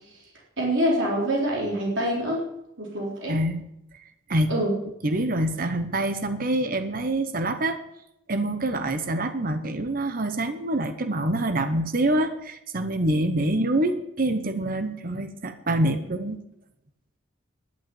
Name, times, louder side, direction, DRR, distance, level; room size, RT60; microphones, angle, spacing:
voice 1, 0.6-2.5 2.8-3.4 4.5-4.7 13.5-13.7, equal, 65° right, -4 dB, 4.1 m, -25 dB
voice 2, 3.3-3.7 4.3-4.6 5.0-7.8 8.3-16.4, right 1 dB, 45° right, 8 dB, 0.9 m, -26 dB
11.5 x 8.0 x 9.1 m, 0.80 s
head